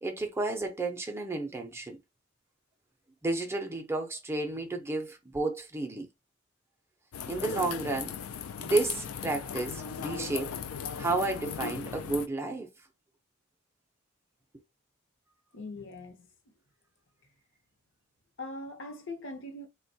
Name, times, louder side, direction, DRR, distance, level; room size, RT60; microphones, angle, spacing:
voice 1, 0.0-2.0 3.2-6.1 7.3-8.2 8.6-10.5 11.0-12.7, right 2 dB, 10° right, 0.5 m, -32 dB
sound 1, 7.1-12.3, left 7 dB, 80° left, 0.4 m, -37 dB
voice 2, 15.5-16.3 18.4-19.7, left 2 dB, 60° left, 0.7 m, -41 dB
3.5 x 2.2 x 2.6 m
head